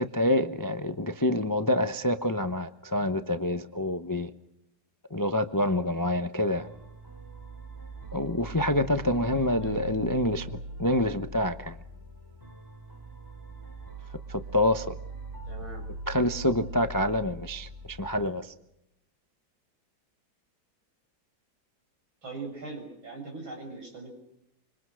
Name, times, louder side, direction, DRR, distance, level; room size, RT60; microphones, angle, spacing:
voice 1, 0.0-4.3 5.1-6.7 8.1-11.8 14.3-14.9 16.1-18.5, left 1 dB, 25° left, 9 dB, 0.4 m, -27 dB
sound 1, 6.6-18.3, right 2 dB, 10° right, 3.5 m, -41 dB
voice 2, 9.6-10.0 15.4-15.9 22.2-24.1, right 3 dB, 75° right, 2 dB, 7.7 m, -41 dB
26.0 x 25.5 x 6.4 m, 0.82 s
omnidirectional pair, 2.2 m